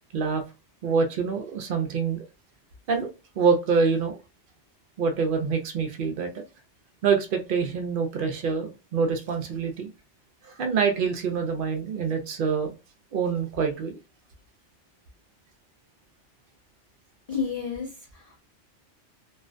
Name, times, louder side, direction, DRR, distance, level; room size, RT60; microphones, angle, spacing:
voice 1, 0.8-2.2 2.9-3.1 3.4-4.2 5.0-6.3 7.0-9.9 10.4-12.7 13.1-14.0, right 5 dB, 60° right, 5 dB, 0.6 m, -25 dB
voice 2, 17.3-18.4, left 6 dB, 50° left, -1 dB, 0.5 m, -31 dB
2.4 x 2.1 x 2.4 m, 0.29 s
omnidirectional pair, 1.2 m